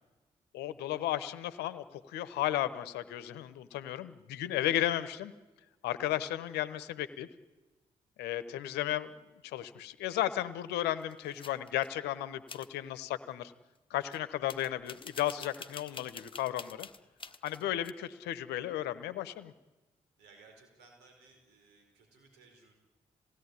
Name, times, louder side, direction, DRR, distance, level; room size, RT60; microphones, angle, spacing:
voice 1, 0.5-5.3 5.8-7.3 8.2-9.1 9.4-13.5 13.9-16.9 17.4-19.5, left 13 dB, 80° left, 14 dB, 1.0 m, -34 dB
sound 1, 11.0-11.9 12.5-12.7 14.1-14.2 14.5-17.9, left 4 dB, 30° left, 1.4 m, -48 dB
voice 2, 20.2-22.7, right 4 dB, 80° right, 4 dB, 4.8 m, -60 dB
21.5 x 17.0 x 9.8 m, 1.2 s
hypercardioid pair, 40°, 17 cm